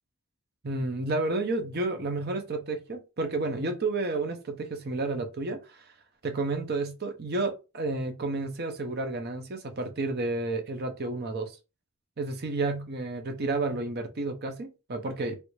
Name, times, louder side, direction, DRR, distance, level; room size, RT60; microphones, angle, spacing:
voice 1, 0.6-5.9 6.2-11.5 12.2-15.4, right 2 dB, 45° right, 0.6 m, -31 dB
3.2 x 2.5 x 3.1 m
head